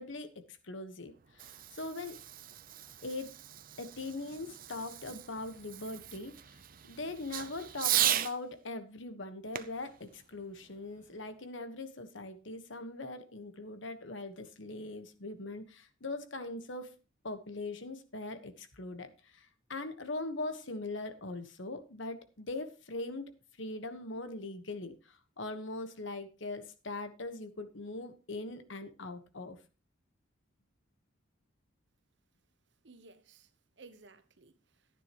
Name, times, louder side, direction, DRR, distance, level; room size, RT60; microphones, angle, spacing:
voice 1, 0.0-2.2 3.0-3.4 3.8-6.6 6.9-16.9 17.2-23.3 23.6-29.6, left 2 dB, 70° left, 1.4 m, -41 dB
Fireworks, 1.1-8.4 9.5-11.2, right 11 dB, 45° right, 0.6 m, -37 dB
voice 2, 32.8-35.0, right 3 dB, 60° right, 1.1 m, -57 dB
14.5 x 9.8 x 3.1 m
head